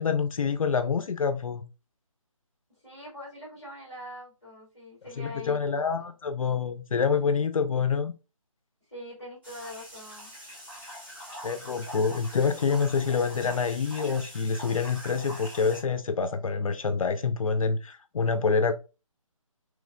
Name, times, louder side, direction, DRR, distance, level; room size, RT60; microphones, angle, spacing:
voice 1, 0.0-1.6 5.2-8.1 11.4-18.7, left 5 dB, 75° left, 0.4 m, -27 dB
voice 2, 2.7-5.6 6.0-6.1 8.9-10.3, left 1 dB, 5° right, 1.7 m, -43 dB
sound 1, 9.4-15.8, equal, 20° right, 1.0 m, -43 dB
3.1 x 3.1 x 2.4 m
hypercardioid pair, 175°, 18 cm